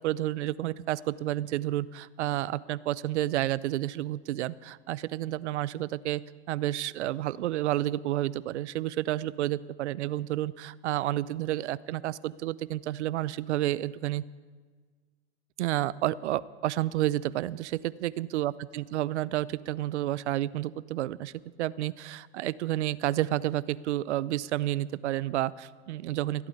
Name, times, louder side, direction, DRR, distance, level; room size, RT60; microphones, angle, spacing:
voice 1, 0.0-6.2 6.5-14.2 15.6-21.3 21.6-26.5, right 14 dB, 80° right, 20 dB, 0.6 m, -30 dB
15.5 x 8.8 x 8.1 m, 1.5 s
hypercardioid pair, 120°, 34 cm